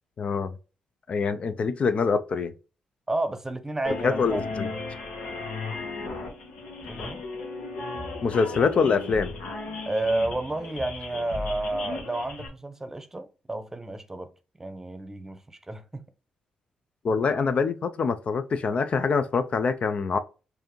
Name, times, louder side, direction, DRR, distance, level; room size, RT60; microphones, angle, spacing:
voice 1, 0.2-0.5 1.1-2.5 4.0-4.7 8.2-9.3 17.0-20.2, left 5 dB, 50° left, 0.4 m, -25 dB
voice 2, 3.1-4.7 6.9-7.2 9.8-14.3 14.6-16.1, right 2 dB, 15° right, 0.8 m, -31 dB
sound 1, 3.8-12.5, left 3 dB, 80° left, 1.3 m, -36 dB
4.6 x 2.6 x 3.0 m
supercardioid pair, 60°, 3 cm